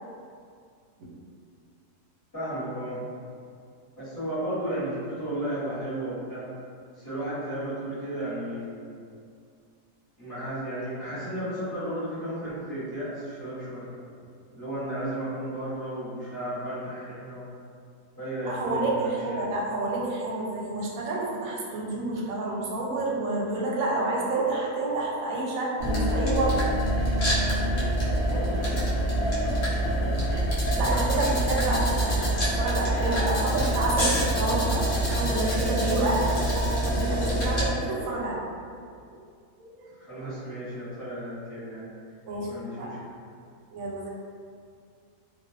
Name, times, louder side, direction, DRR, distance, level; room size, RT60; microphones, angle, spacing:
voice 1, 2.3-3.0 4.0-6.5 6.9-8.8 10.2-13.9 14.5-17.5 18.1-19.4 28.2-28.9 30.0-30.4 30.9-31.4 40.0-41.9 42.5-43.0, right 1 dB, 15° left, -15 dB, 1.0 m, -34 dB
voice 2, 18.5-26.7 30.8-38.5 39.1-39.2 39.6-39.7 42.3-42.5 42.8-42.9 43.7-44.1, right 2 dB, 70° right, -3 dB, 0.9 m, -29 dB
sound 1, 25.8-37.7, right 1 dB, 55° left, 0.9 m, -25 dB
2.4 x 2.2 x 2.3 m, 2.2 s
omnidirectional pair, 1.6 m